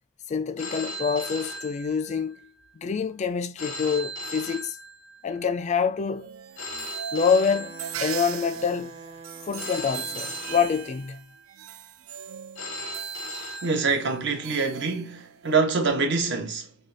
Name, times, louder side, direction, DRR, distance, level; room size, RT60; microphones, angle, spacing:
voice 1, 0.3-2.4 2.8-4.8 5.2-6.3 7.1-7.7 8.0-8.9 9.5-11.2, left 6 dB, 35° left, 0.3 m, -26 dB
Telephone, 0.6-2.4 3.6-5.4 6.6-8.4 9.6-11.4 12.6-14.4, right 1 dB, 90° left, 0.8 m, -37 dB
sound 1, 6.1-15.6, right 9 dB, 85° right, 0.4 m, -40 dB
Wind instrument woodwind instrument, 7.3-10.8, right 3 dB, 30° right, 0.6 m, -45 dB
voice 2, 13.6-16.8, right 4 dB, 60° right, 0.8 m, -25 dB
3.3 x 2.3 x 3.8 m
head